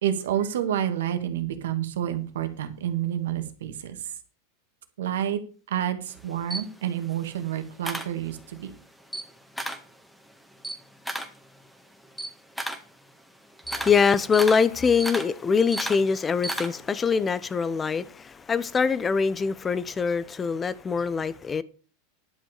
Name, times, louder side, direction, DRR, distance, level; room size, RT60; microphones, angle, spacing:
voice 1, 0.0-4.0 5.0-5.4 5.7-8.7, right 10 dB, 80° right, 1.8 m, -29 dB
Camera, 6.1-8.7 9.0-9.9 10.3-17.0, right 1 dB, ahead, 1.7 m, -35 dB
voice 2, 13.7-21.6, left 5 dB, 20° left, 0.9 m, -24 dB
11.5 x 6.2 x 6.6 m
hypercardioid pair, 110°, 0 cm